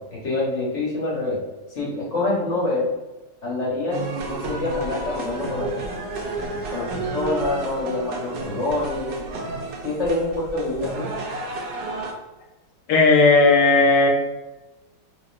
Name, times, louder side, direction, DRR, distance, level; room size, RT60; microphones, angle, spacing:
voice 1, 0.1-1.4 1.7-2.9 3.4-4.0 4.3-5.9 6.4-9.1 9.8-11.1, left 2 dB, 50° left, -5 dB, 1.2 m, -26 dB
sound 1, 3.9-12.1, right 3 dB, 70° right, 1.2 m, -31 dB
voice 2, 12.9-14.1, left 3 dB, 80° left, 0 dB, 1.4 m, -15 dB
4.0 x 3.1 x 2.5 m, 1.0 s
omnidirectional pair, 1.9 m